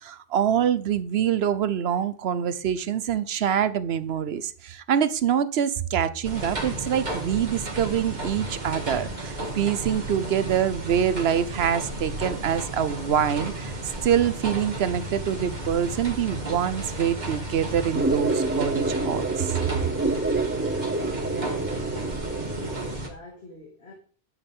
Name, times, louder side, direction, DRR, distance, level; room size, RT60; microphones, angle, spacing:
voice 1, 0.0-13.7 14.0-19.6, right 9 dB, 75° right, 1.0 m, -25 dB
sound 1, 6.2-23.1, right 2 dB, 45° right, 2.1 m, -33 dB
sound 2, 17.9-22.9, right 2 dB, 15° right, 0.4 m, -27 dB
voice 2, 22.4-23.9, left 2 dB, 85° left, 2.6 m, -44 dB
10.5 x 8.7 x 3.6 m
omnidirectional pair, 1.1 m